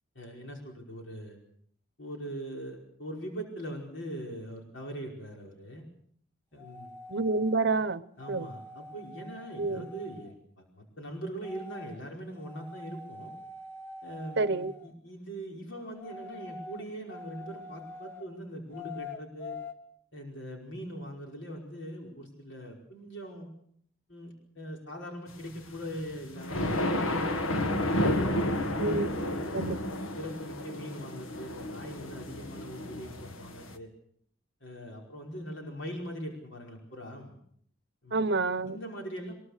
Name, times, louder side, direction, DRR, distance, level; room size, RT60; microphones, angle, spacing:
voice 1, 0.2-1.4 2.0-5.8 6.5-6.9 8.2-13.3 14.0-19.6 20.1-23.5 24.1-29.6 30.1-33.9 34.6-37.3 38.0-38.2 38.6-39.3, equal, 60° left, 5.1 m, -41 dB
sound 1, 6.6-7.7 8.2-10.3 11.4-12.0 12.4-14.9 16.0-18.3 18.7-19.7, left 2 dB, 10° left, 1.7 m, -45 dB
voice 2, 7.1-8.0 8.3-8.5 9.6-9.8 14.4-14.7 28.8-29.1 29.5-29.8 38.1-38.8, right 3 dB, 55° right, 0.8 m, -28 dB
sound 2, 25.7-33.7, left 1 dB, 85° left, 1.7 m, -31 dB
23.5 x 22.0 x 6.6 m
head